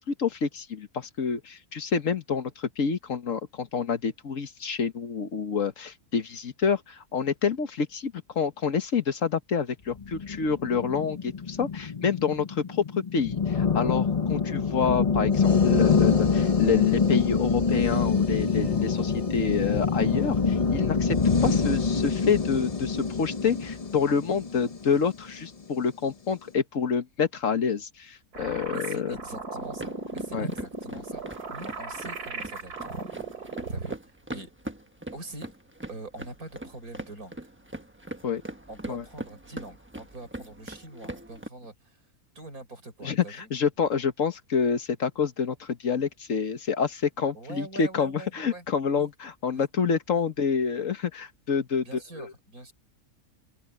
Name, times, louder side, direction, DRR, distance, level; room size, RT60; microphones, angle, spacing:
voice 1, 0.0-21.2 21.4-29.2 30.3-30.5 38.2-38.4 38.9-39.0 43.0-51.9 52.2-52.3, left 6 dB, 60° left, 1.7 m, -28 dB
sound 1, 10.0-25.4, left 5 dB, 30° left, 0.8 m, -25 dB
sound 2, 28.3-34.0, right 3 dB, 85° right, 3.4 m, -36 dB
voice 2, 28.7-32.9 33.7-34.5 35.1-35.5 35.9-37.4 38.7-42.0 42.4-43.5 47.3-48.7 48.9-49.1 49.5-49.6 51.9-52.7, right 2 dB, 70° right, 5.4 m, -43 dB
sound 3, 29.6-41.5, right 1 dB, 10° right, 1.1 m, -42 dB
open air
omnidirectional pair, 1.6 m